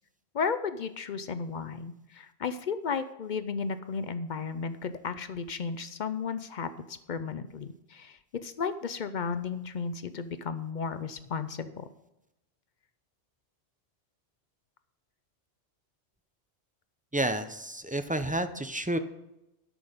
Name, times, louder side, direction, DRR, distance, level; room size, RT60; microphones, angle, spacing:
voice 1, 0.3-11.9, left 5 dB, 55° left, 11 dB, 0.6 m, -34 dB
voice 2, 17.1-19.0, right 1 dB, 15° right, 9 dB, 0.3 m, -30 dB
12.0 x 6.3 x 5.1 m, 0.90 s
omnidirectional pair, 1.1 m